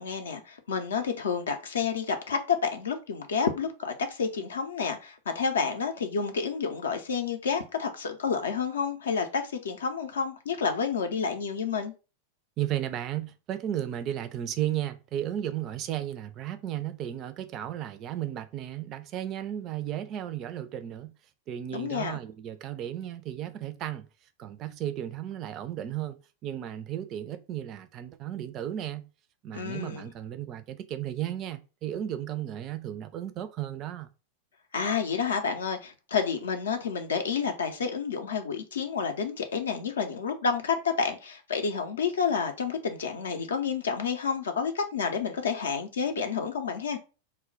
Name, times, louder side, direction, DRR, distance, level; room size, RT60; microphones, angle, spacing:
voice 1, 0.0-11.9 21.7-22.2 29.5-30.1 34.7-47.0, left 6 dB, 65° left, 0.5 m, -29 dB
voice 2, 12.6-21.1 21.5-24.1 24.4-26.2 26.4-29.1 29.4-34.1, right 11 dB, 35° right, 0.3 m, -34 dB
2.1 x 2.1 x 3.7 m
figure-of-eight pair, 90°, 0 cm